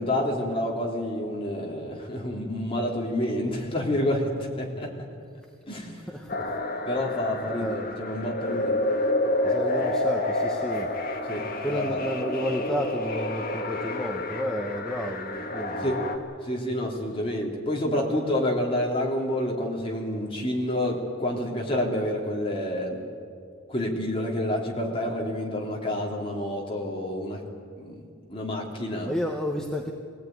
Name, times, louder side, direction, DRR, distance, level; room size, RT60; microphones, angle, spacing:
voice 1, 0.0-4.9 5.7-6.0 6.8-8.8 11.3-12.1 15.8-16.0 16.4-23.0 23.7-27.4 27.8-27.9 28.3-29.1, left 1 dB, 25° left, -2 dB, 3.2 m, -28 dB
voice 2, 6.1-6.8 7.5-7.8 9.4-10.9 11.6-16.1 29.0-29.9, equal, 5° left, 1 dB, 1.0 m, -32 dB
sound 1, 6.3-16.2, left 1 dB, 40° left, 1.9 m, -29 dB
22.5 x 17.5 x 9.3 m, 2.3 s
head